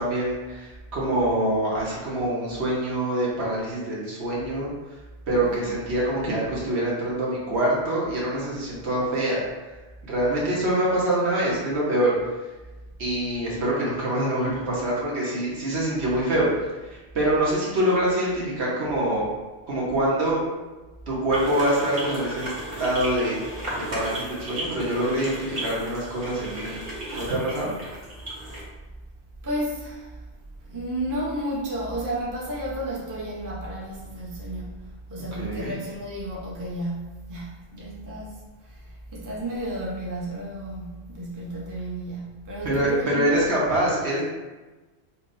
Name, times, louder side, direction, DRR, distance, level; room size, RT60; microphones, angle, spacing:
voice 1, 0.0-4.7 5.3-9.4 10.0-12.1 13.0-16.5 16.8-19.2 19.7-20.4 21.1-22.5 22.8-23.4 23.9-26.8 27.1-27.7 35.4-35.8 42.6-44.2, right 1 dB, 65° right, -5 dB, 1.2 m, -25 dB
voice 2, 5.4-5.7 15.8-15.9 28.4-28.7 29.4-30.2 30.6-43.4, right 1 dB, 20° right, -6 dB, 0.6 m, -33 dB
sound 1, 21.3-28.6, right 1 dB, 45° right, 1.2 m, -35 dB
5.6 x 2.2 x 2.6 m, 1.2 s
omnidirectional pair, 1.2 m